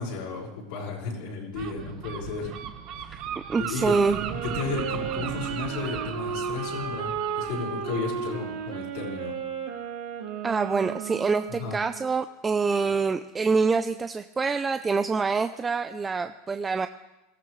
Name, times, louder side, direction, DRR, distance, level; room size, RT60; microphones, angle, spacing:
voice 1, 0.0-2.5 3.0-3.3 3.6-3.9 4.4-9.3 11.6-11.8, left 4 dB, 70° left, -3 dB, 5.2 m, -34 dB
Gull seagull, 1.5-9.0, right 9 dB, 50° right, 1.3 m, -37 dB
voice 2, 3.5-4.2 10.4-16.9, right 4 dB, 20° right, 9 dB, 0.5 m, -25 dB
Wind instrument woodwind instrument, 3.7-12.0, right 6 dB, 80° right, 2.3 m, -34 dB
23.0 x 14.5 x 3.3 m, 0.98 s
supercardioid pair, 120°, 0 cm